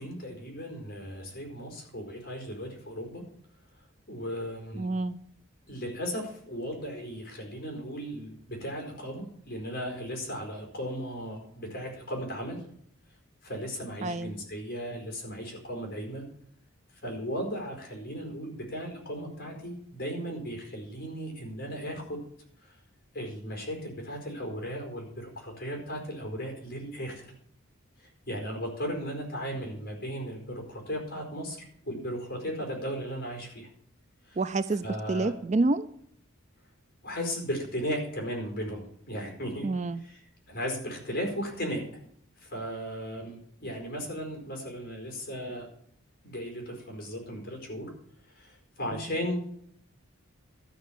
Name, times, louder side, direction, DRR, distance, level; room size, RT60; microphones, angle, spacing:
voice 1, 0.0-3.2 4.1-4.9 5.7-12.6 13.4-16.2 17.0-22.2 22.6-22.7 23.1-27.3 28.0-33.7 34.3-34.4 34.7-35.3 37.0-39.7 39.9-41.8 42.4-45.7 46.2-47.9 48.3-49.4, equal, 45° left, 1 dB, 4.5 m, -36 dB
voice 2, 4.7-5.2 14.0-14.4 34.4-35.9 39.6-40.0 48.9-49.0, right 3 dB, 35° right, 13 dB, 0.4 m, -28 dB
13.0 x 6.1 x 7.4 m, 0.66 s
head